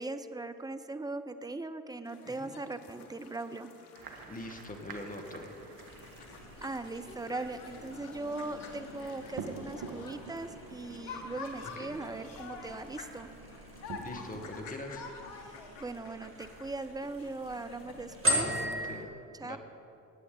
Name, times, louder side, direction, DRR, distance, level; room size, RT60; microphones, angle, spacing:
voice 1, 0.0-3.7 6.6-13.3 15.4-18.5 19.4-19.6, right 2 dB, 10° right, 10 dB, 0.6 m, -39 dB
sound 1, 2.1-19.0, left 4 dB, 80° left, 1.2 m, -48 dB
sound 2, 3.9-14.7, right 5 dB, 55° right, 1.3 m, -49 dB
voice 2, 4.3-5.5 11.6-12.0 14.0-15.0 18.3-19.6, left 1 dB, 20° left, 4 dB, 1.6 m, -43 dB
sound 3, 5.9-18.9, equal, 30° right, 2.4 m, -40 dB
17.0 x 8.3 x 3.9 m, 2.7 s
hypercardioid pair, 55°, 44 cm